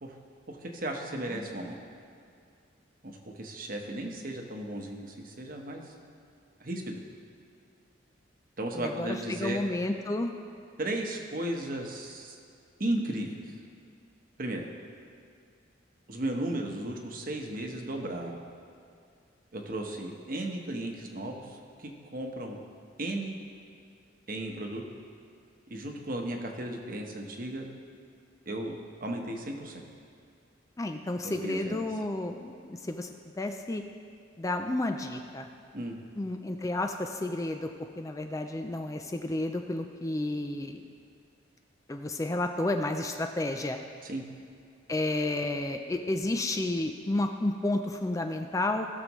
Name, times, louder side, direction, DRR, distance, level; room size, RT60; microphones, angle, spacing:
voice 1, 0.5-1.8 3.0-5.9 6.6-7.0 8.6-9.6 10.8-12.4 12.8-13.5 14.4-14.6 16.1-18.4 19.5-22.6 23.0-23.3 24.3-24.8 25.7-27.7 28.5-29.8 31.2-31.8 35.7-36.0 44.0-44.2, right 1 dB, 50° right, 2 dB, 1.1 m, -35 dB
voice 2, 8.8-10.3 30.8-33.8 34.4-35.5 36.2-40.8 41.9-43.8 44.9-48.9, left 2 dB, 15° left, 5 dB, 0.4 m, -31 dB
18.0 x 6.7 x 3.1 m, 2.3 s
head